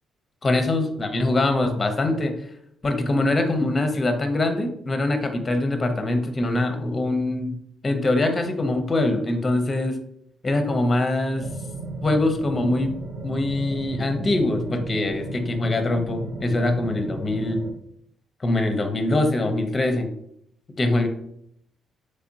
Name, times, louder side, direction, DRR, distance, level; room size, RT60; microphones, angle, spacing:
voice 1, 0.4-2.4 2.8-7.6 7.8-10.0 10.4-11.5 12.0-12.9 13.2-17.6 18.4-20.1 20.8-21.1, left 2 dB, 30° left, 6 dB, 0.6 m, -23 dB
sound 1, 11.4-17.7, right 1 dB, 80° right, 0.7 m, -34 dB
3.4 x 3.2 x 2.7 m, 0.70 s
cardioid pair, 90°, 0 cm